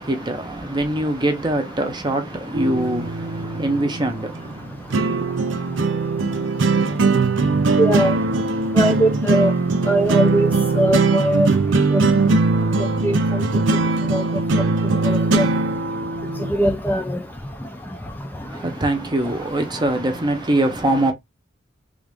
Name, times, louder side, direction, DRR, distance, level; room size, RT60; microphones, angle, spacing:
voice 1, 0.0-4.9 18.5-21.1, right 1 dB, 20° right, 0.7 m, -23 dB
sound 1, 2.5-16.5, right 3 dB, 65° right, 0.6 m, -20 dB
voice 2, 7.8-8.1 8.8-9.5 9.9-10.5 10.8-11.5 11.9-12.0 13.0-13.2 14.1-14.2 15.0-15.5 16.5-17.2, right 1 dB, 10° left, 0.4 m, -20 dB
3.6 x 2.5 x 3.4 m
head